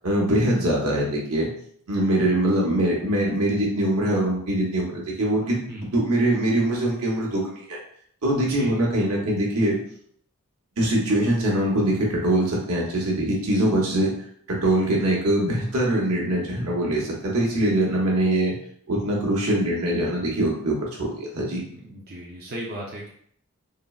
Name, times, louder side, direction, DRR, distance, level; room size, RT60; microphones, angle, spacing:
voice 1, 0.0-1.5 1.9-5.6 5.9-7.8 8.2-9.8 10.8-14.1 14.5-18.6 18.9-21.6, right 1 dB, 80° right, -3 dB, 0.9 m, -23 dB
voice 2, 21.7-23.1, right 1 dB, 45° right, -4 dB, 0.5 m, -36 dB
3.7 x 2.0 x 2.3 m, 0.63 s
head